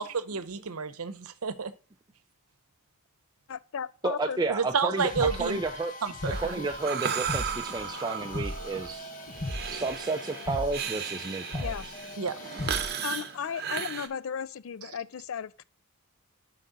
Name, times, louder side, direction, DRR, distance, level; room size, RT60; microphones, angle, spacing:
voice 1, 0.0-1.7 4.5-5.6 6.0-6.4 12.2-12.4, right 5 dB, 80° right, 0.8 m, -30 dB
voice 2, 3.5-4.4 11.6-11.9 13.0-15.6, left 7 dB, 65° left, 0.4 m, -35 dB
voice 3, 4.0-5.9 6.4-9.1 9.7-11.7, right 3 dB, 20° right, 0.4 m, -32 dB
sound 1, 5.0-13.2, left 1 dB, 35° left, 1.0 m, -38 dB
Breathing, 6.3-14.1, right 7 dB, 45° right, 0.8 m, -35 dB
7.5 x 5.5 x 4.0 m
head